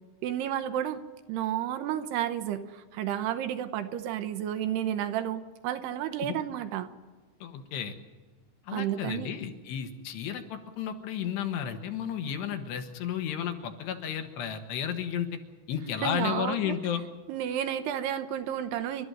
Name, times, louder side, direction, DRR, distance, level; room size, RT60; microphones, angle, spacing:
voice 1, 0.2-1.0 1.3-6.9 8.7-9.3 16.0-16.7 17.3-19.1, right 10 dB, 75° right, 10 dB, 2.7 m, -31 dB
voice 2, 7.4-8.0 8.7-15.4 15.7-17.0, left 9 dB, 70° left, 7 dB, 3.4 m, -33 dB
29.0 x 13.0 x 7.9 m, 1.4 s
omnidirectional pair, 5.3 m